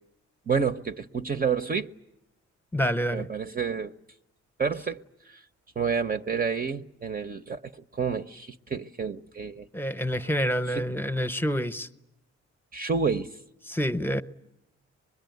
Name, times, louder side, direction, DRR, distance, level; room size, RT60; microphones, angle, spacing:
voice 1, 0.5-1.9 3.1-3.9 4.6-5.0 5.3-5.4 5.8-9.7 10.8-10.9 12.7-13.3, right 5 dB, 30° right, 0.9 m, -29 dB
voice 2, 2.7-3.3 9.7-11.9 13.7-14.2, equal, 5° left, 1.0 m, -27 dB
24.5 x 22.0 x 9.4 m
cardioid pair, 90°, 30 cm